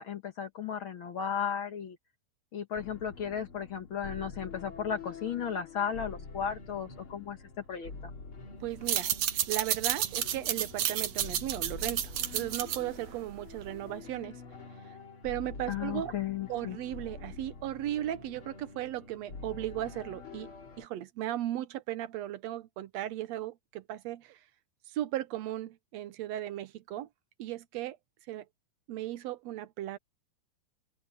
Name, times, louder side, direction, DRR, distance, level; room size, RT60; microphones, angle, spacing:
voice 1, 0.0-2.0 2.5-7.4 7.7-7.9 15.7-16.8, left 8 dB, 60° left, 1.4 m, -35 dB
sound 1, 2.7-20.9, left 4 dB, 35° left, 3.6 m, -47 dB
voice 2, 8.6-9.1 9.5-14.4 15.2-16.1 16.5-20.5 20.8-24.4 24.9-27.1 27.4-28.0 28.3-28.4 28.9-30.0, right 13 dB, 80° right, 1.5 m, -36 dB
sound 2, 8.7-13.9, right 10 dB, 60° right, 2.5 m, -32 dB
open air
omnidirectional pair, 4.1 m